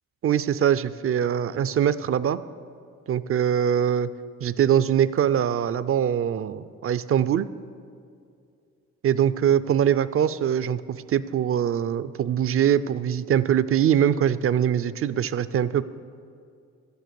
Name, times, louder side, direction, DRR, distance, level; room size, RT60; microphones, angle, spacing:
voice 1, 0.2-2.4 3.1-4.1 4.4-7.5 9.0-15.8, right 9 dB, 50° right, 15 dB, 0.5 m, -23 dB
12.5 x 9.3 x 6.9 m, 2.4 s
cardioid pair, 90°, 30 cm